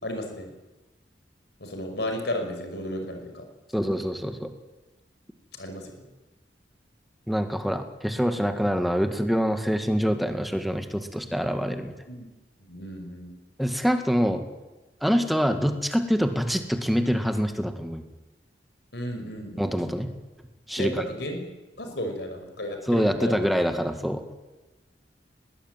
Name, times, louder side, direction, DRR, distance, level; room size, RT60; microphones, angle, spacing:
voice 1, 0.0-0.5 1.6-3.4 3.7-3.9 5.5-5.9 12.1-12.3 12.7-13.3 18.9-20.0 20.8-21.4 21.8-23.5, left 1 dB, 65° left, 5 dB, 5.6 m, -34 dB
voice 2, 3.7-4.5 7.3-11.9 13.6-14.5 15.0-18.0 19.6-20.1 20.7-20.9 22.9-24.2, equal, ahead, 7 dB, 1.9 m, -25 dB
20.5 x 18.0 x 9.2 m, 1.1 s
head